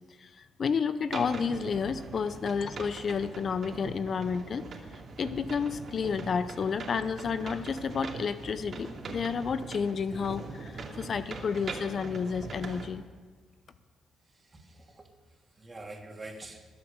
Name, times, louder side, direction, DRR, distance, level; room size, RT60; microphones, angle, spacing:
voice 1, 0.2-4.6 5.2-13.0, left 6 dB, 50° left, 12 dB, 0.6 m, -31 dB
sound 1, 1.1-12.9, right 3 dB, 50° right, 2.5 m, -42 dB
voice 2, 14.2-16.6, right 2 dB, 25° right, 1 dB, 2.9 m, -46 dB
21.0 x 8.1 x 7.0 m, 1.5 s
cardioid pair, 90°, 0 cm